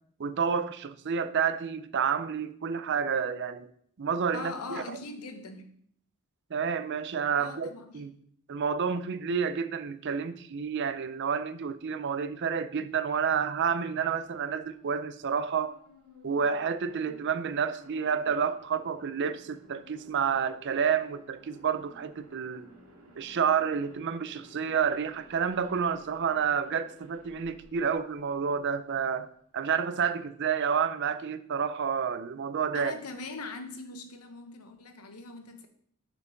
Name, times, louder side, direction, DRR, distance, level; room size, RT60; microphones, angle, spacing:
voice 1, 0.2-3.7 4.0-4.8 6.5-8.1 8.5-15.7 16.2-22.6 23.2-29.3 29.5-33.0, right 6 dB, 50° right, 0.4 m, -29 dB
voice 2, 4.3-5.8 7.4-8.0 32.7-35.7, left 3 dB, 85° left, 1.0 m, -41 dB
sound 1, 14.0-28.7, right 1 dB, 85° right, 2.1 m, -55 dB
6.7 x 4.4 x 5.8 m
head